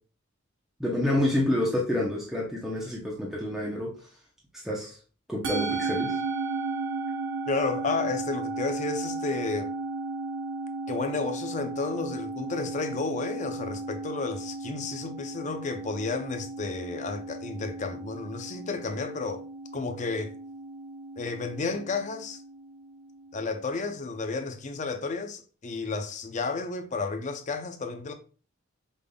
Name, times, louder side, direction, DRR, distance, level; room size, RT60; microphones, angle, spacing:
voice 1, 0.8-4.1 4.5-5.0 5.3-6.2, left 1 dB, ahead, 0.7 m, -28 dB
Musical instrument, 5.4-23.9, right 3 dB, 80° right, 0.8 m, -35 dB
voice 2, 7.5-9.7 10.9-19.4 19.7-20.3 21.2-22.4 23.3-28.1, left 4 dB, 35° left, 0.5 m, -32 dB
5.3 x 3.5 x 2.2 m
head